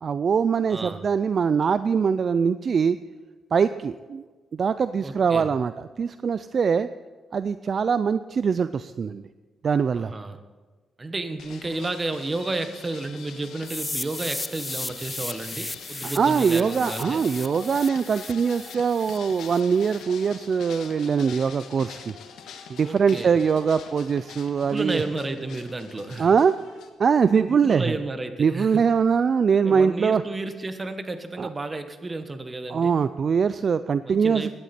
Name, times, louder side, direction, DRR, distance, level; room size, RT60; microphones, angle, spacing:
voice 1, 0.0-3.0 3.5-4.2 4.5-6.9 7.3-9.2 9.6-10.1 16.2-22.2 22.7-25.0 26.2-26.5 27.0-27.9 28.4-30.2 31.4-31.5 32.7-34.5, right 6 dB, 50° right, 13 dB, 0.4 m, -22 dB
voice 2, 0.7-1.0 5.0-5.5 9.9-10.4 11.0-17.2 22.8-23.3 24.6-26.3 27.6-28.8 29.6-33.0 34.0-34.5, right 2 dB, 25° right, 8 dB, 1.3 m, -32 dB
sound 1, 11.4-26.9, left 7 dB, 85° left, 1.3 m, -44 dB
sound 2, 13.7-19.6, left 2 dB, 15° left, 0.6 m, -35 dB
17.5 x 11.0 x 4.3 m, 1.3 s
cardioid pair, 95°, 0 cm